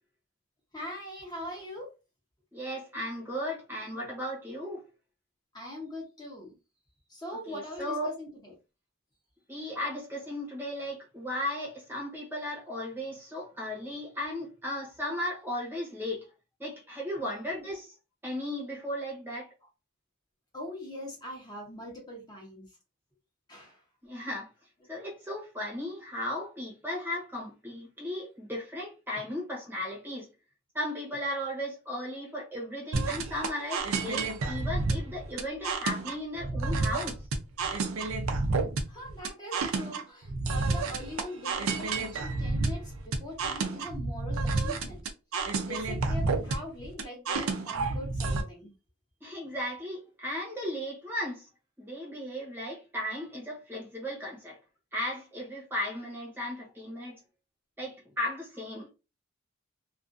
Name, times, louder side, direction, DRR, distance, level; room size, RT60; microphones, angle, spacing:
voice 1, 0.7-1.9 5.5-6.5 7.1-8.5 20.5-22.6 23.5-23.8 38.9-45.1 45.6-48.7, left 1 dB, 20° left, 0.8 m, -42 dB
voice 2, 2.5-4.8 7.5-8.1 9.5-16.3 16.6-17.9 18.2-19.5 24.0-24.5 24.9-30.3 30.7-37.2 49.2-51.5 51.8-54.6 54.9-57.2 57.8-58.9, left 1 dB, 10° right, 0.8 m, -36 dB
sound 1, 32.9-48.4, right 3 dB, 90° right, 0.5 m, -30 dB
2.4 x 2.4 x 2.4 m
head